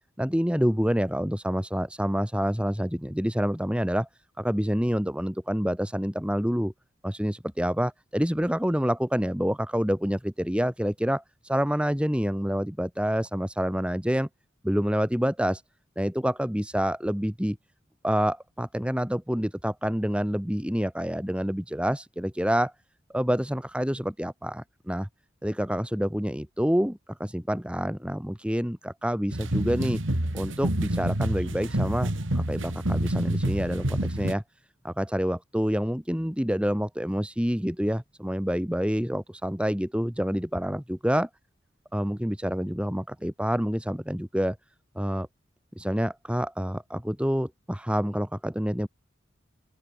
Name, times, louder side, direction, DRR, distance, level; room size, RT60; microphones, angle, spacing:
voice 1, 0.2-4.1 4.4-6.7 7.0-14.3 14.6-15.6 16.0-17.6 18.0-22.7 23.1-25.1 25.4-30.0 30.3-34.4 34.8-41.3 41.9-44.6 45.0-45.3 45.8-48.9, equal, 5° right, 2.0 m, -27 dB
sound 1, 29.3-34.3, right 1 dB, 85° right, 3.1 m, -28 dB
open air
head